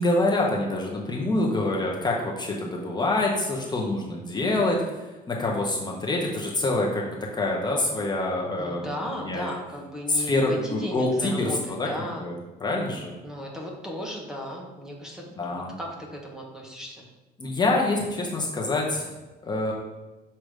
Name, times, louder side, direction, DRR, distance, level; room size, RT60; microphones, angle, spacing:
voice 1, 0.0-8.8 9.2-9.5 10.1-11.5 11.8-11.9 12.2-12.3 12.6-13.1 15.4-15.7 17.4-19.1 19.4-19.7, left 2 dB, 25° left, -2 dB, 1.0 m, -26 dB
voice 2, 8.6-12.3 13.2-17.1, left 1 dB, 5° right, -1 dB, 1.1 m, -36 dB
6.5 x 2.9 x 5.0 m, 1.2 s
cardioid pair, 110°, 17 cm